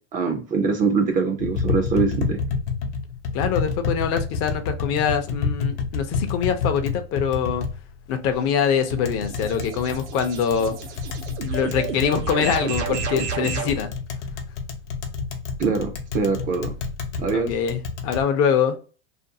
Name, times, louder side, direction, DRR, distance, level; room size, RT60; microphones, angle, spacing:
voice 1, 0.1-2.4 15.6-16.7 17.2-17.5, right 5 dB, 25° right, 0.4 m, -23 dB
Tap, 1.4-18.2, left 5 dB, 85° left, 0.7 m, -29 dB
voice 2, 3.3-7.7 8.1-10.8 11.4-13.9 17.3-18.8, left 7 dB, 45° left, 0.5 m, -24 dB
sound 1, 8.3-13.8, right 7 dB, 80° right, 0.7 m, -31 dB
2.5 x 2.3 x 2.6 m
supercardioid pair, 135°, 34 cm